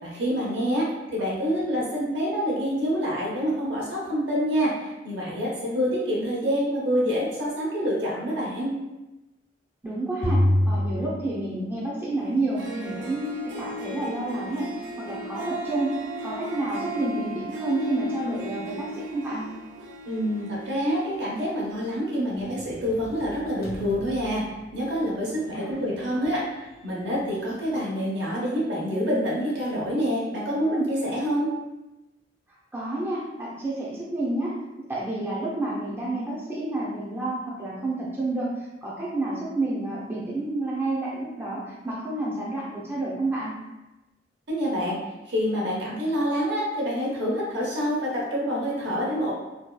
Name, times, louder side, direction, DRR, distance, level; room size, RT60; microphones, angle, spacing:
voice 1, 0.0-8.7 20.1-24.4 24.7-26.4 26.8-31.5 44.5-45.0 45.3-49.3, equal, 75° right, -5 dB, 0.8 m, -27 dB
voice 2, 9.8-14.7 15.0-15.9 16.2-19.5 25.5-25.8 32.7-34.5 34.9-43.5, right 2 dB, 15° right, -7 dB, 0.4 m, -29 dB
sound 1, 10.2-12.0, left 1 dB, 90° left, 0.9 m, -24 dB
Harp, 12.3-12.4 12.6-22.1, right 1 dB, 90° right, 0.4 m, -36 dB
sound 2, 22.4-27.8, equal, 55° left, 0.5 m, -45 dB
2.7 x 2.2 x 2.2 m, 1.0 s
head